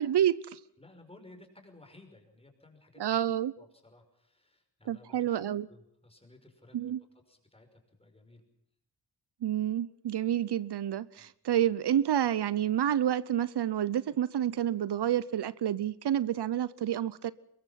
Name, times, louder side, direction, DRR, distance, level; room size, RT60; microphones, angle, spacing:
voice 1, 0.0-0.6 3.0-3.5 4.9-5.7 6.7-7.0 9.4-17.3, right 10 dB, 75° right, 18 dB, 0.9 m, -29 dB
voice 2, 0.8-3.1 3.6-6.9 7.3-8.4 11.2-11.3, left 2 dB, 15° left, 5 dB, 5.7 m, -57 dB
23.5 x 22.5 x 5.8 m, 0.74 s
wide cardioid pair, 110°, 40 cm